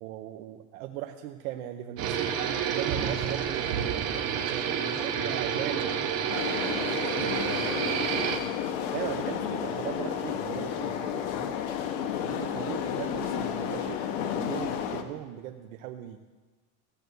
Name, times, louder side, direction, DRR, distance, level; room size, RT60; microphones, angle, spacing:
voice 1, 0.0-2.3 2.7-4.7 5.0-6.1 8.9-11.2 12.2-16.2, right 12 dB, 75° right, 5 dB, 0.8 m, -38 dB
sound 1, 2.0-8.4, right 8 dB, 35° right, 1.0 m, -29 dB
voice 2, 4.6-6.3 6.6-8.5 9.4-9.9 10.5-11.0 11.3-11.5, left 4 dB, 80° left, -1 dB, 4.8 m, -44 dB
sound 2, 6.3-15.0, left 9 dB, 55° left, 1.1 m, -32 dB
15.0 x 7.8 x 6.8 m, 1.3 s
cardioid pair, 180°, 43 cm